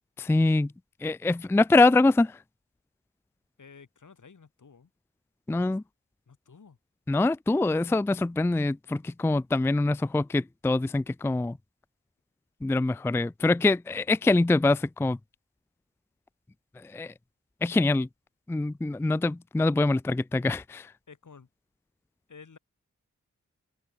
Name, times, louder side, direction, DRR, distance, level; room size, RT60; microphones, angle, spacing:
voice 1, 0.2-0.7 1.0-2.4 5.5-5.8 7.1-11.6 12.6-15.2 16.8-17.1 17.6-18.1 18.5-20.9, left 2 dB, 10° left, 0.4 m, -24 dB
voice 2, 3.6-4.9 6.3-6.8 21.1-21.5 22.3-22.6, left 5 dB, 75° left, 4.9 m, -51 dB
open air
wide cardioid pair, 85°, 31 cm